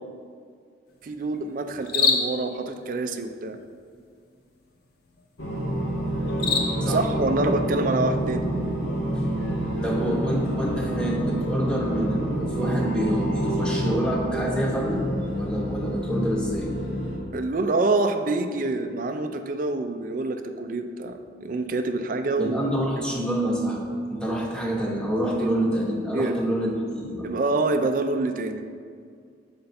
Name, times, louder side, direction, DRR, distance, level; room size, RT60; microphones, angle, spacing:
sound 1, 0.9-11.1, left 5 dB, 55° left, 0.7 m, -33 dB
voice 1, 1.0-3.6 6.9-8.5 17.3-22.6 23.0-23.1 25.4-25.5 26.1-26.4 27.2-28.6, right 2 dB, 45° right, 7 dB, 0.4 m, -26 dB
sound 2, 5.4-17.2, right 1 dB, 75° left, 1.2 m, -27 dB
voice 2, 9.8-15.1 15.4-16.7 22.4-23.8 24.1-27.3, equal, 5° left, -2 dB, 0.8 m, -27 dB
6.8 x 4.3 x 4.1 m, 2.2 s
head